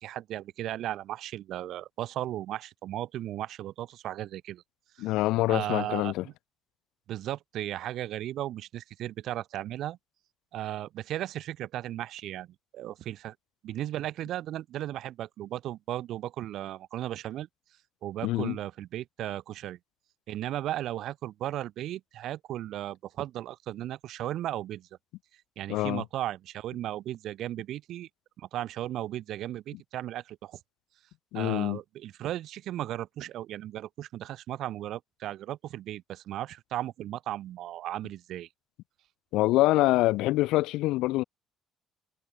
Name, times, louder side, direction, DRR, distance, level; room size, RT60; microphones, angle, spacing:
voice 1, 0.0-4.6 5.0-5.1 5.5-6.3 7.1-10.0 10.5-12.5 12.7-13.3 13.6-17.5 18.0-19.8 20.3-24.9 25.6-28.1 28.4-30.6 31.3-38.5, right 13 dB, 55° right, 1.4 m, -36 dB
voice 2, 5.0-6.2 18.2-18.6 25.7-26.0 31.3-31.8 39.3-41.2, left 18 dB, 85° left, 0.3 m, -25 dB
cardioid pair, 170°, 0 cm